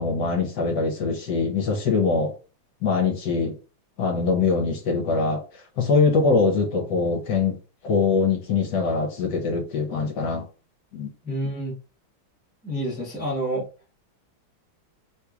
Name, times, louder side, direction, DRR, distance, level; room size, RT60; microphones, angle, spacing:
voice 1, 0.0-2.3 2.8-3.5 4.0-5.4 5.8-7.5 7.8-10.5 10.9-11.1, left 4 dB, 65° left, 1.3 m, -23 dB
voice 2, 11.2-11.7 12.6-13.6, right 1 dB, 10° right, 0.6 m, -28 dB
3.5 x 2.9 x 2.4 m
omnidirectional pair, 2.2 m